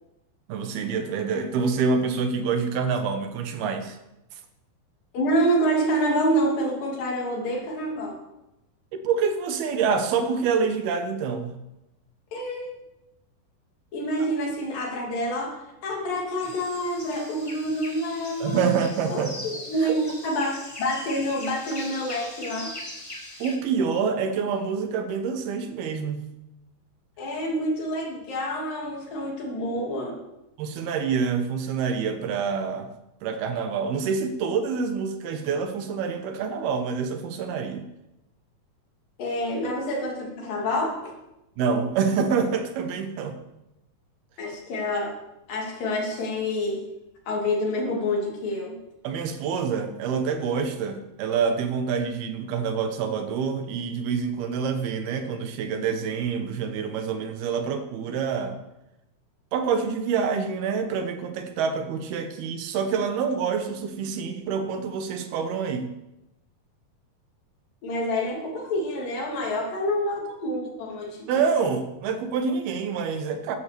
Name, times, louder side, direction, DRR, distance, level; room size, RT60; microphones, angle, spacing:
voice 1, 0.5-4.0 8.9-11.5 18.4-19.5 19.8-20.0 23.4-26.3 30.6-32.9 33.2-37.8 41.6-43.4 49.0-58.6 59.5-65.9 71.3-73.6, right 6 dB, 75° right, 7 dB, 3.1 m, -27 dB
voice 2, 5.1-8.2 12.3-12.7 13.9-18.8 19.1-22.7 27.2-30.2 39.2-41.0 44.4-45.2 45.5-46.9 47.3-48.8 67.8-71.4, equal, 60° left, 0 dB, 4.3 m, -27 dB
sound 1, 16.4-23.6, left 1 dB, 35° left, 0.4 m, -40 dB
13.0 x 10.0 x 6.9 m, 0.92 s
omnidirectional pair, 4.5 m